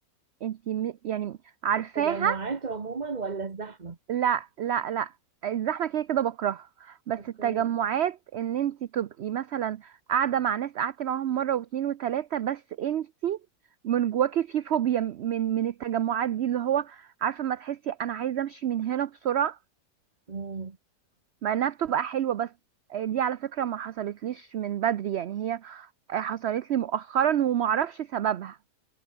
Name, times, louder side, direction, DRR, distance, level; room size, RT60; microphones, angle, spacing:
voice 1, 0.4-1.4 1.6-2.4 4.1-5.1 5.4-13.4 13.8-19.6 21.4-22.5 22.9-28.6, right 10 dB, 60° right, 0.7 m, -28 dB
voice 2, 1.9-4.0 7.4-7.7 20.3-20.8, right 4 dB, 30° right, 1.3 m, -34 dB
omnidirectional pair, 1.6 m